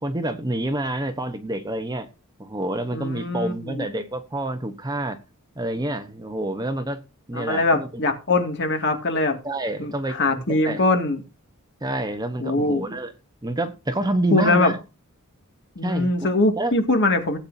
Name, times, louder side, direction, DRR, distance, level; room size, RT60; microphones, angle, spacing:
voice 1, 0.0-2.1 2.4-5.2 5.6-7.0 7.3-8.0 9.4-10.8 11.8-13.1 13.4-14.8 15.8-16.1 16.6-16.7, right 1 dB, 20° right, 1.0 m, -27 dB
voice 2, 2.9-3.8 7.3-9.4 9.8-9.9 10.2-11.2 12.4-12.8 14.3-14.7 15.8-17.4, left 2 dB, 50° left, 2.2 m, -22 dB
17.5 x 8.7 x 2.7 m
head